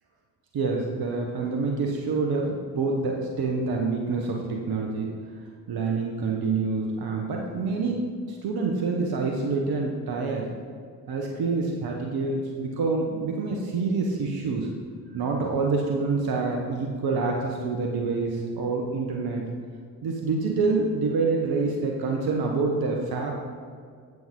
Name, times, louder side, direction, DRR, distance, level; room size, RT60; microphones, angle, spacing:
voice 1, 0.5-5.1 5.7-8.0 8.3-10.5 11.1-14.7 15.1-19.4 20.0-23.3, right 4 dB, 55° right, 1 dB, 1.2 m, -27 dB
9.1 x 7.3 x 3.7 m, 2.1 s
hypercardioid pair, 45°, 45 cm